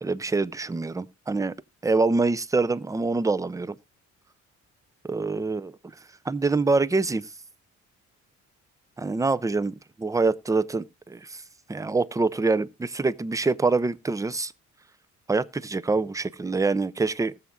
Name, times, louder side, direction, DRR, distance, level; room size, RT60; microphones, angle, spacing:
voice 1, 0.0-1.5 1.8-3.8 5.0-5.7 6.3-7.3 9.0-11.4 11.7-14.5 15.3-17.3, right 3 dB, 10° right, 0.5 m, -25 dB
19.5 x 7.2 x 2.3 m
cardioid pair, 90°, 30 cm